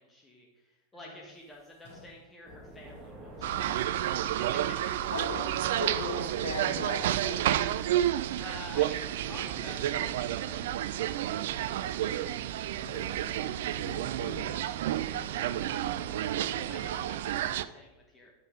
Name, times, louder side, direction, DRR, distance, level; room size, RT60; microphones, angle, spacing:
voice 1, 0.0-3.9 4.2-5.1 8.4-13.7 14.3-15.9 16.5-18.3, left 1 dB, 15° left, -2 dB, 1.3 m, -51 dB
sound 1, 1.2-3.9 4.2-6.7 7.3-8.0 8.3-8.4 8.6-11.2 11.6-12.1 12.4-15.0, left 2 dB, 55° left, 3.2 m, -54 dB
sound 2, 2.4-17.6, equal, 20° right, 1.6 m, -50 dB
sound 3, 3.4-17.7, right 12 dB, 55° right, 0.3 m, -30 dB
voice 2, 5.1-7.4 7.7-7.8 14.2-14.6, left 1 dB, 85° left, -1 dB, 1.9 m, -37 dB
9.5 x 5.4 x 5.0 m, 1.1 s
figure-of-eight pair, 90°, 0 cm